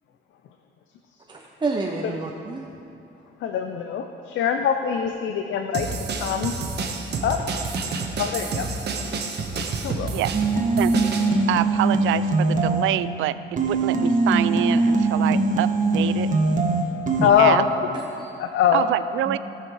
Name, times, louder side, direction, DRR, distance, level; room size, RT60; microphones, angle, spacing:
voice 1, 1.3-2.6 7.9-8.0 9.1-9.2 9.6-9.7 17.9-18.4 19.2-19.4, right 3 dB, 25° right, 0 dB, 0.8 m, -30 dB
voice 2, 3.4-5.9 6.2-6.5 7.2-7.4 8.2-8.7 9.8-10.1 17.2-17.7 18.4-18.8, left 8 dB, 75° left, 6 dB, 0.6 m, -22 dB
sound 1, 5.7-11.3, right 4 dB, 55° right, 1.2 m, -29 dB
sound 2, 10.3-13.1 13.6-17.3, right 3 dB, 40° right, 1.3 m, -21 dB
voice 3, 11.5-16.3 17.2-17.6 18.7-19.4, right 14 dB, 80° right, 15 dB, 0.4 m, -26 dB
17.0 x 5.8 x 4.7 m, 2.8 s
cardioid pair, 90°, 20 cm